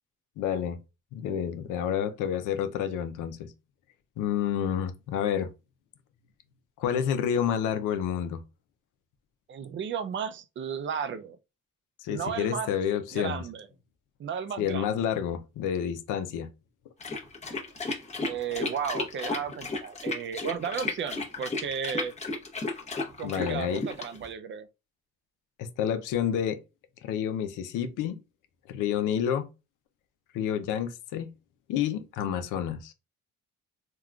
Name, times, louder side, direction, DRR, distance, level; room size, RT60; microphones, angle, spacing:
voice 1, 0.4-0.8 1.1-3.5 4.2-5.5 6.8-8.4 12.0-13.4 14.6-16.5 23.2-23.8 25.6-26.6 27.0-28.2 28.7-29.5 30.3-31.3 31.7-32.9, left 9 dB, 90° left, 0.5 m, -29 dB
voice 2, 9.5-11.4 12.1-12.7 13.1-13.7 14.2-15.0 18.3-22.1 23.2-24.7, right 7 dB, 40° right, 0.4 m, -34 dB
sound 1, 17.0-24.3, left 3 dB, 20° left, 0.8 m, -33 dB
3.6 x 2.3 x 2.3 m
cardioid pair, 90°, 30 cm